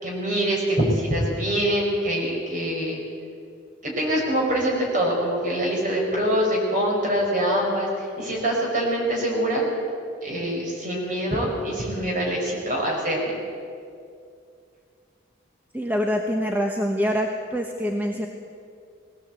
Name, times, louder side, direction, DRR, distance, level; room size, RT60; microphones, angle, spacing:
voice 1, 0.0-3.0 3.8-9.6 10.2-13.4, right 1 dB, 45° right, -2 dB, 5.7 m, -24 dB
voice 2, 15.7-18.3, equal, 10° right, 1 dB, 1.1 m, -25 dB
20.0 x 16.5 x 8.3 m, 2.4 s
head